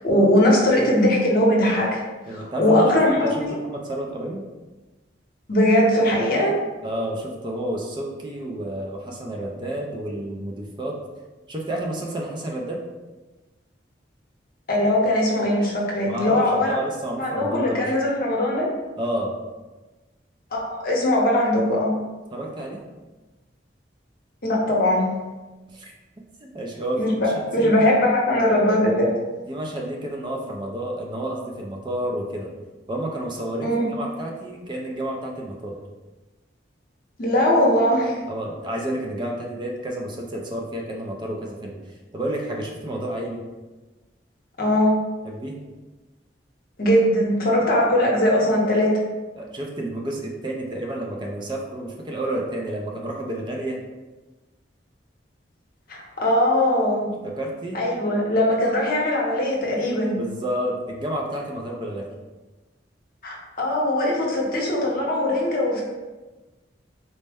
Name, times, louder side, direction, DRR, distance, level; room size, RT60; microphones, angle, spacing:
voice 1, 0.0-2.0 2.3-3.6 5.5-6.5 14.7-16.8 17.2-18.7 20.5-21.9 24.4-25.0 27.0-29.1 33.6-33.9 37.2-38.2 44.6-45.0 46.8-48.9 55.9-57.1 57.7-60.2 63.2-65.8, left 1 dB, 50° left, -2 dB, 0.8 m, -20 dB
voice 2, 2.3-3.3 3.6-4.4 6.8-11.0 11.5-12.8 16.1-17.9 19.0-19.3 22.3-22.8 25.7-25.9 26.4-27.7 29.5-32.5 32.9-35.7 38.3-41.8 42.1-43.4 45.2-45.6 49.4-53.8 57.2-57.8 60.2-62.1, right 1 dB, 25° right, 0 dB, 0.4 m, -30 dB
4.1 x 2.1 x 3.4 m, 1.2 s
head